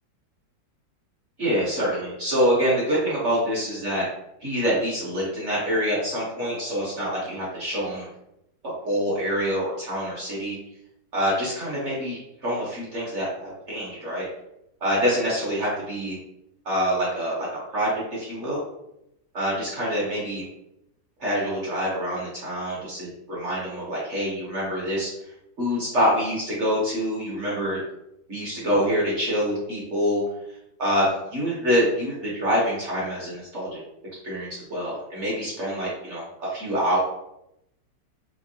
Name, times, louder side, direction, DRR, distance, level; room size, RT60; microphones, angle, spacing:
voice 1, 1.4-4.1 4.4-8.1 8.8-10.5 11.1-14.3 14.8-16.2 16.6-18.6 19.3-20.4 21.2-25.1 25.6-27.8 28.3-30.2 30.8-33.8 34.2-37.0, equal, 50° right, -6 dB, 1.0 m, -26 dB
3.6 x 2.8 x 2.7 m, 0.83 s
omnidirectional pair, 2.0 m